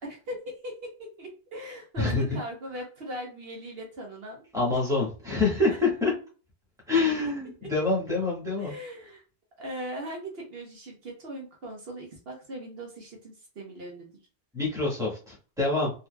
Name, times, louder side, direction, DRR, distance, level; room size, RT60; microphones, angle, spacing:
voice 1, 0.0-4.5 5.7-5.8 8.6-9.2 9.6-14.1, equal, 65° right, 0 dB, 1.1 m, -39 dB
voice 2, 2.0-2.4 4.5-6.1 6.9-8.7 14.5-15.9, left 3 dB, 5° right, -5 dB, 1.5 m, -26 dB
3.9 x 2.8 x 2.2 m, 0.36 s
omnidirectional pair, 1.1 m